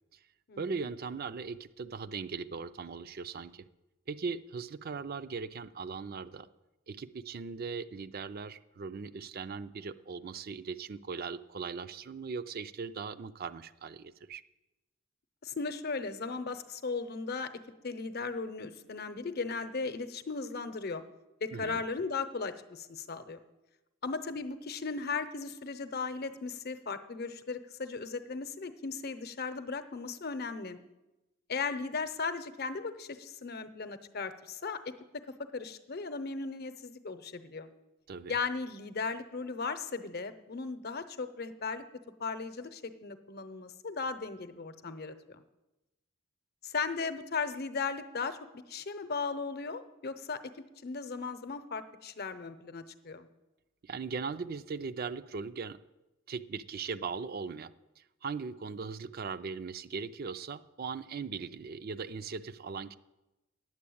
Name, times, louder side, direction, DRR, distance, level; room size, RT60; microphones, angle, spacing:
voice 1, 0.6-3.7 4.1-6.5 6.9-14.4 21.5-21.8 38.1-38.3 53.8-55.8 56.3-57.7 58.0-63.0, right 5 dB, 50° right, 13 dB, 0.4 m, -39 dB
voice 2, 15.4-17.5 17.8-21.0 21.4-23.4 24.0-30.8 31.5-34.9 35.5-37.7 38.3-41.8 42.2-45.4 46.6-50.4 50.8-53.3, left 4 dB, 55° left, 11 dB, 0.8 m, -37 dB
9.6 x 7.7 x 8.6 m, 1.0 s
head